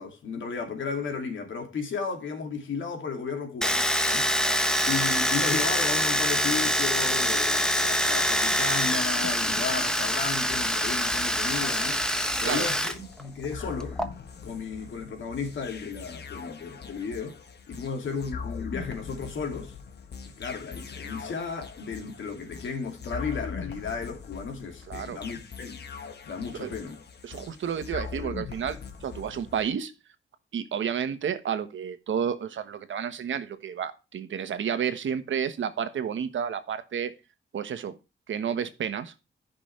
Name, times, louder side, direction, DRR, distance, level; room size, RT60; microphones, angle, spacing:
voice 1, 0.0-4.3 4.9-12.0 12.4-14.0 14.4-17.4 17.7-19.8 20.3-25.8 26.2-27.0, left 5 dB, 75° left, 2.7 m, -34 dB
Domestic sounds home sounds, 3.6-12.9 13.2-14.0, equal, 5° left, 1.2 m, -25 dB
sound 1, 10.5-29.7, left 5 dB, 55° left, 1.5 m, -41 dB
voice 2, 24.9-25.2 26.5-26.7 27.2-29.9 30.5-37.1 37.5-38.0 38.3-39.1, right 8 dB, 75° right, 1.3 m, -31 dB
14.0 x 6.0 x 3.3 m
wide cardioid pair, 120°, 20 cm